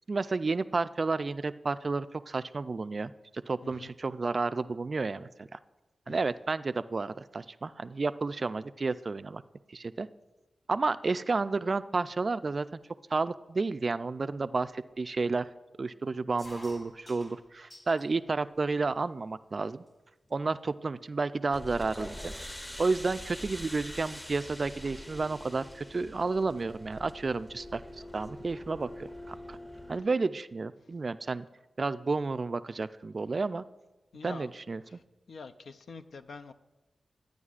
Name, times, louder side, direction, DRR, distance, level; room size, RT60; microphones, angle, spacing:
voice 1, 0.1-3.1 3.5-5.6 6.1-9.4 9.7-10.1 10.7-12.8 13.1-15.5 15.8-19.8 20.3-22.3 22.8-27.8 28.1-29.6 29.9-31.4 31.8-33.6 34.2-34.8, right 3 dB, 50° right, 13 dB, 0.3 m, -31 dB
sound 1, 16.4-18.1 18.5-19.2 19.9-20.0 20.2-20.6 21.2-21.3 21.6-23.8 24.1-24.4 25.7-26.0 27.1-27.2 27.4-27.5 27.8-28.7, left 1 dB, 35° left, 2.1 m, -53 dB
sound 2, 21.5-30.0, left 1 dB, 10° left, 0.7 m, -44 dB
voice 2, 34.1-34.5 34.9-36.5, left 4 dB, 75° left, 8 dB, 0.4 m, -46 dB
12.5 x 9.3 x 2.4 m, 1.1 s
cardioid pair, 60°, 0 cm